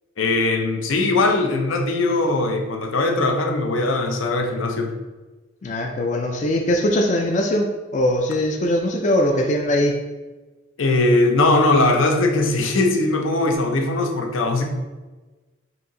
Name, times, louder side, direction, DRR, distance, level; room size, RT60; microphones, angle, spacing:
voice 1, 0.2-5.0 10.8-14.7, left 2 dB, 75° left, 4 dB, 0.6 m, -20 dB
voice 2, 5.6-7.7 7.9-9.9, left 1 dB, 35° left, 1 dB, 0.4 m, -21 dB
4.3 x 2.7 x 3.7 m, 1.2 s
head